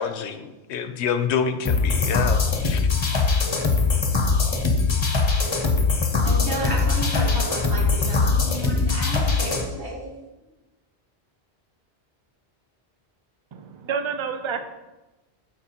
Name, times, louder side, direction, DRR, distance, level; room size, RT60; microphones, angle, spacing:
voice 1, 0.0-2.9, left 7 dB, 90° left, 9 dB, 0.9 m, -27 dB
sound 1, 1.7-9.7, left 4 dB, 30° left, 0.6 m, -21 dB
voice 2, 6.2-10.1, right 1 dB, 85° right, -3 dB, 2.0 m, -32 dB
voice 3, 13.5-14.6, right 6 dB, 40° right, 8 dB, 0.4 m, -29 dB
12.5 x 4.5 x 2.9 m, 1.0 s
omnidirectional pair, 1.1 m